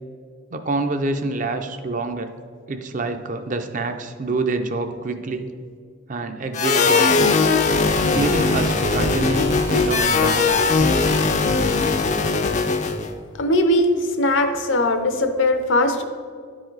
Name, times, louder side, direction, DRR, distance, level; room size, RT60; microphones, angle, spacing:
voice 1, 0.5-2.3 2.7-5.5 6.1-7.3 8.1-10.5, right 3 dB, 40° right, 7 dB, 0.5 m, -26 dB
sound 1, 6.5-13.1, left 4 dB, 35° left, 0.4 m, -19 dB
sound 2, 7.7-12.7, right 1 dB, 80° right, 1.3 m, -35 dB
voice 2, 13.4-16.0, left 1 dB, 70° left, 8 dB, 0.7 m, -20 dB
10.5 x 4.8 x 3.9 m, 2.2 s
head